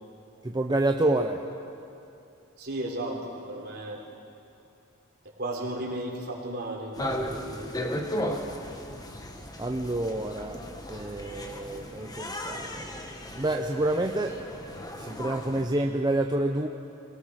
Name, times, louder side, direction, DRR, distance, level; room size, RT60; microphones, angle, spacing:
voice 1, 0.4-1.4 9.6-10.6 10.9-12.8 13.4-14.4 14.9-16.7, right 2 dB, 20° right, 3 dB, 0.7 m, -28 dB
voice 2, 2.6-4.0 5.4-7.7, right 1 dB, 50° right, -1 dB, 3.8 m, -34 dB
sound 1, 6.9-15.6, left 1 dB, 20° left, 1.4 m, -36 dB
25.0 x 18.0 x 6.4 m, 2.7 s
head